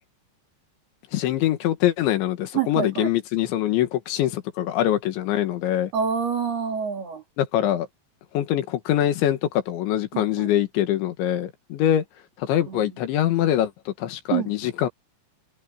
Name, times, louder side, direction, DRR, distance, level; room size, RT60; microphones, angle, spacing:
voice 1, 1.1-5.9 7.4-7.9 8.3-12.0 12.4-14.9, left 12 dB, 90° left, 4.1 m, -23 dB
voice 2, 2.5-3.1 5.9-7.2 10.1-10.5 12.7-12.9 14.3-14.5, right 7 dB, 60° right, 5.8 m, -27 dB
open air
omnidirectional pair, 5.1 m